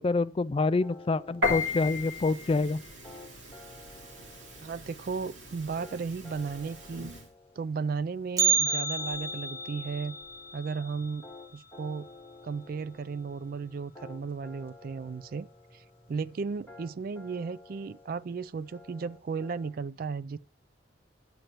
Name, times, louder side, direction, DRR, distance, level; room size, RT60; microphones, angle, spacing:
voice 1, 0.0-2.8, left 3 dB, 30° left, 0.3 m, -27 dB
sound 1, 0.8-19.7, left 3 dB, 10° left, 1.9 m, -52 dB
Piano, 1.4-7.3, left 3 dB, 85° right, 2.4 m, -36 dB
voice 2, 4.6-7.1 7.6-10.2 10.5-11.3 11.5-12.1 12.4-15.5 15.7-15.8 16.1-20.4, right 5 dB, 50° right, 0.3 m, -35 dB
Bell, 8.4-12.5 12.7-12.8 13.3-13.4 14.2-14.3 15.1-15.4 15.7-15.8, right 5 dB, 20° right, 1.1 m, -31 dB
10.5 x 7.7 x 3.0 m
head